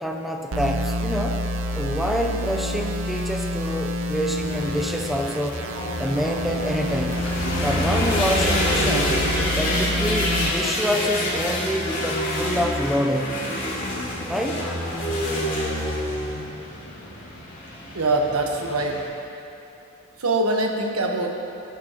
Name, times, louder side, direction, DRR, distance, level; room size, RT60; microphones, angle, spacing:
voice 1, 0.0-1.5 1.7-5.6 6.0-7.2 7.6-9.2 9.6-13.5 14.3-14.7, equal, ahead, 2 dB, 0.6 m, -27 dB
sound 1, 0.5-10.5, equal, 65° right, 0.7 m, -28 dB
sound 2, 4.4-19.0, left 1 dB, 40° left, 2.7 m, -27 dB
sound 3, 7.1-12.7, left 1 dB, 60° left, 1.9 m, -37 dB
voice 2, 17.9-19.0 20.2-21.3, right 2 dB, 85° right, 1 dB, 1.3 m, -23 dB
14.5 x 11.5 x 3.1 m, 2.9 s
head